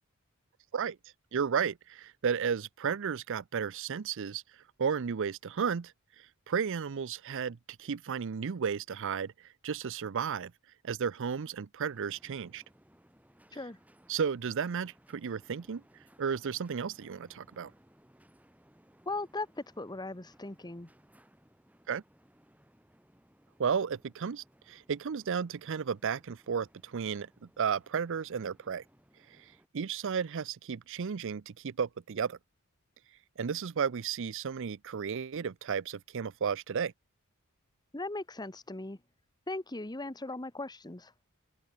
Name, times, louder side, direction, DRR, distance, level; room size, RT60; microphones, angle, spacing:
voice 1, 1.3-4.4 4.8-9.3 9.6-10.5 10.8-12.6 14.1-15.8 16.2-17.7 21.9-22.0 23.6-27.3 27.6-28.8 29.7-32.4 33.4-36.9, right 6 dB, 60° right, 0.5 m, -33 dB
sound 1, 11.8-29.7, equal, 5° right, 7.1 m, -64 dB
voice 2, 19.1-20.9 37.9-39.0 39.5-41.1, left 2 dB, 20° left, 1.3 m, -38 dB
head